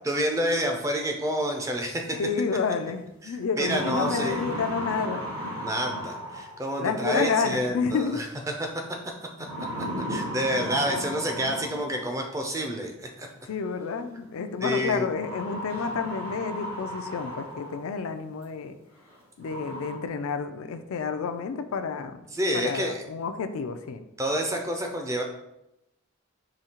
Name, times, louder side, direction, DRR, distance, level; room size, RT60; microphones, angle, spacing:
voice 1, 0.1-2.2 3.2-4.4 5.6-8.7 10.1-13.3 14.6-15.1 22.3-23.0 24.2-25.2, equal, 15° right, 3 dB, 0.4 m, -28 dB
voice 2, 2.1-5.2 6.8-8.2 13.5-18.7 19.4-22.2 22.5-24.0, left 5 dB, 75° left, 8 dB, 0.4 m, -29 dB
sound 1, 2.8-2.9 3.4-6.8 8.2-8.6 9.4-12.2 13.5-13.6 15.1-17.9 18.4-18.5 19.1-19.2 19.4-20.0, equal, 75° right, 1.1 m, -35 dB
5.0 x 2.7 x 2.8 m, 0.87 s
head